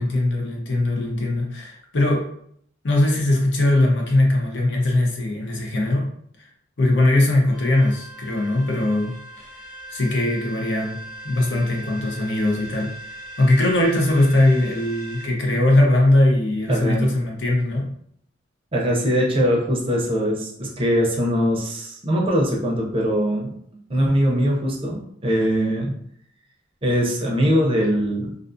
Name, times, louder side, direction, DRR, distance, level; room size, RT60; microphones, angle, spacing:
voice 1, 0.0-2.3 2.8-6.1 6.4-6.5 6.8-9.5 9.9-11.0 11.2-12.9 13.4-17.9, left 1 dB, 65° left, 0 dB, 0.6 m, -20 dB
sound 1, 7.5-15.3, right 1 dB, 35° left, 1.0 m, -39 dB
voice 2, 16.7-17.2 18.7-23.5 23.9-26.0 26.8-28.3, equal, 30° right, -2 dB, 0.5 m, -21 dB
2.4 x 2.3 x 2.5 m, 0.66 s
head